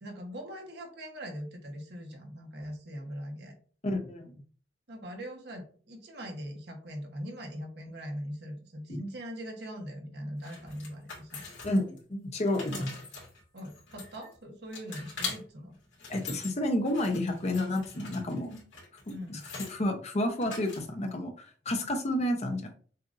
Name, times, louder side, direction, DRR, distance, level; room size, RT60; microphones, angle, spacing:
voice 1, 0.0-3.6 4.9-11.5 12.5-12.9 13.5-15.7 19.1-19.4, equal, 65° right, 3 dB, 1.1 m, -41 dB
voice 2, 3.8-4.2 8.9-9.0 11.6-12.9 16.1-18.6 19.1-22.7, left 1 dB, 35° left, 4 dB, 0.7 m, -30 dB
sound 1, 10.4-12.0 12.3-14.3 14.7-15.4 15.8-16.5 16.8-19.7 20.4-21.1, left 4 dB, 85° left, 2.2 m, -42 dB
6.6 x 2.5 x 2.5 m, 0.43 s
head